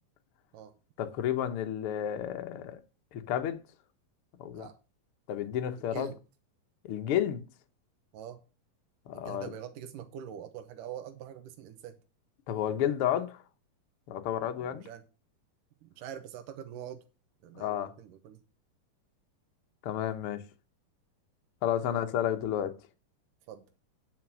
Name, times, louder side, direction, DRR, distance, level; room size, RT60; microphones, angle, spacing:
voice 1, 1.0-2.8 3.1-3.6 4.4-4.7 5.3-6.1 6.8-7.4 9.1-9.5 12.5-13.4 14.1-14.9 17.5-17.9 19.8-20.4 21.6-22.7, left 10 dB, 85° left, 1.2 m, -31 dB
voice 2, 5.8-6.2 8.1-8.4 9.1-12.0 14.6-15.0 15.8-17.0 17.4-18.4 21.8-22.1 23.5-23.6, right 9 dB, 75° right, 2.5 m, -44 dB
9.5 x 5.8 x 6.2 m
omnidirectional pair, 4.0 m